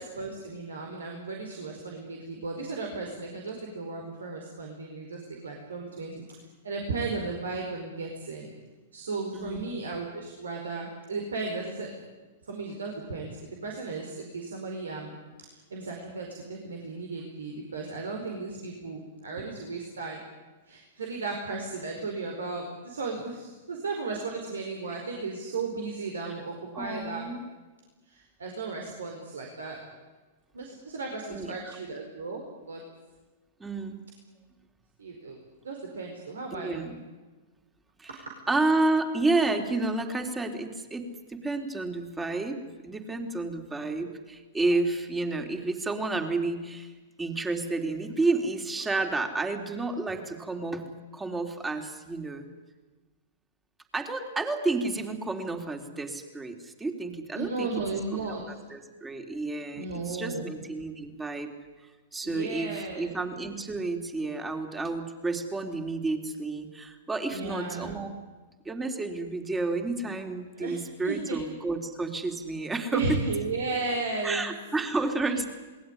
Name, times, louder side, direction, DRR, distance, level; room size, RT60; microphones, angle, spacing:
voice 1, 0.0-6.3 6.6-8.5 8.9-11.9 12.4-15.1 15.5-20.2 20.7-27.3 28.1-29.8 30.5-32.8 35.0-35.4 35.6-36.9 38.1-38.2 57.3-58.4 59.7-60.5 62.2-63.2 67.3-67.9 70.6-70.8 71.0-71.4 72.9-74.5 75.2-75.5, right 3 dB, 80° right, 2 dB, 4.7 m, -35 dB
voice 2, 9.3-9.8 26.7-27.4 31.3-31.8 33.6-34.1 36.5-37.0 38.0-38.1 38.5-46.9 47.2-50.9 51.1-52.5 53.9-57.7 58.2-61.5 62.1-68.1 68.7-73.2 74.2-75.4, right 3 dB, 15° right, 5 dB, 3.6 m, -30 dB
27.5 x 20.5 x 10.0 m, 1.3 s
hypercardioid pair, 110°, 0 cm